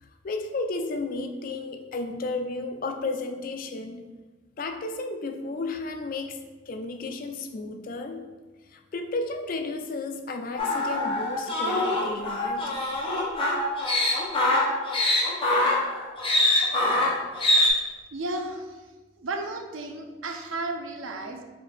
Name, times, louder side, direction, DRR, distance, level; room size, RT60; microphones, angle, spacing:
voice 1, 0.0-4.1 4.6-6.4 6.7-8.2 8.7-12.7, left 3 dB, 45° left, 6 dB, 0.4 m, -33 dB
sound 1, 10.6-17.7, left 1 dB, 25° left, 0.8 m, -24 dB
voice 2, 18.1-18.8 19.2-21.4, right 2 dB, 90° right, 5 dB, 0.5 m, -33 dB
4.4 x 2.6 x 4.2 m, 1.2 s
head